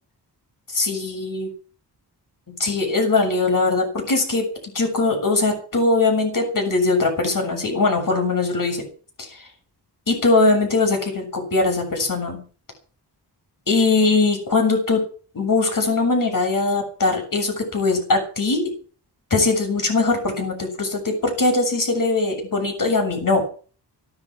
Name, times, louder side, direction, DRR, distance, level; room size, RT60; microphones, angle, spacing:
voice 1, 0.7-1.5 2.5-4.5 4.7-8.9 10.1-12.4 13.7-15.0 15.3-18.7 19.3-23.4, left 3 dB, 50° left, 4 dB, 7.1 m, -21 dB
16.5 x 12.5 x 6.3 m, 0.40 s
wide cardioid pair, 120°, 41 cm